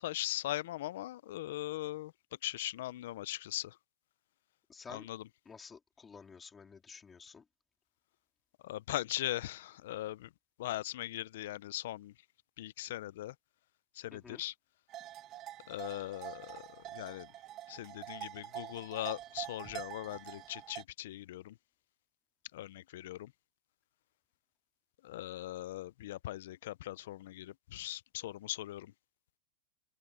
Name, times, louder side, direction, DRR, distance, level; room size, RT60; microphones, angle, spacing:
voice 1, 0.0-2.1 2.4-3.8 4.9-5.2 8.6-10.3 10.6-12.1 12.6-13.3 13.9-14.5 15.7-17.3 17.7-21.6 22.5-23.3 25.0-28.9, left 15 dB, 65° left, 0.4 m, -40 dB
voice 2, 4.7-5.1 5.5-7.4 14.1-14.4, left 5 dB, 15° left, 2.3 m, -51 dB
sound 1, 14.9-20.8, right 13 dB, 30° right, 1.0 m, -46 dB
open air
supercardioid pair, 160°, 0 cm